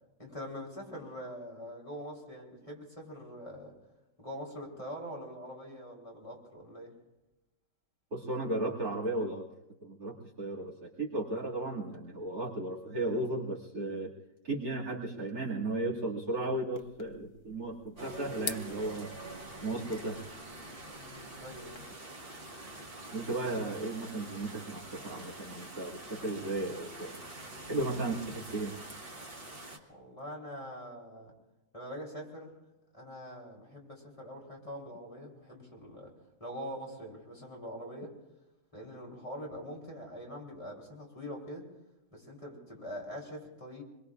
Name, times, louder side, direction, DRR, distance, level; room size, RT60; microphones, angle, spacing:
voice 1, 0.2-3.8 4.2-6.9 21.0-21.8 29.9-31.3 31.7-32.5 32.9-38.1 38.7-41.7 42.1-43.8, equal, 20° left, -3 dB, 3.4 m, -44 dB
voice 2, 8.1-9.5 9.8-14.1 14.4-19.1 19.6-20.2 23.1-27.2 27.6-28.8, right 2 dB, 75° right, -5 dB, 2.9 m, -35 dB
sound 1, 16.7-21.8, left 8 dB, 80° left, 1.5 m, -47 dB
sound 2, 18.0-29.8, right 1 dB, 40° right, 1.9 m, -46 dB
26.5 x 22.0 x 2.5 m, 0.98 s
omnidirectional pair, 1.6 m